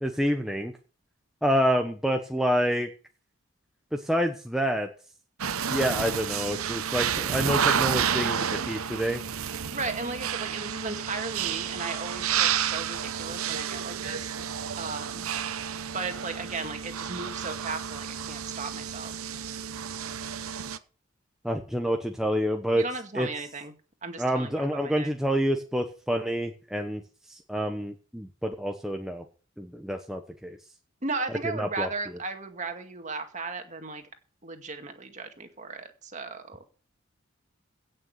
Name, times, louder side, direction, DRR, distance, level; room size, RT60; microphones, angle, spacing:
voice 1, 0.0-0.7 1.4-2.9 3.9-4.9 5.7-9.2 21.4-22.8 23.1-23.3 24.2-27.0 27.3-29.2 29.6-30.6 31.4-31.9, equal, ahead, 3 dB, 1.0 m, -28 dB
sound 1, 5.4-20.8, right 8 dB, 90° right, 0.9 m, -30 dB
voice 2, 9.7-14.3 14.8-15.3 15.9-19.1 22.7-23.7 24.0-25.1 31.0-34.0 34.4-36.6, right 3 dB, 35° right, 6 dB, 2.1 m, -36 dB
17.0 x 6.6 x 6.6 m, 0.38 s
head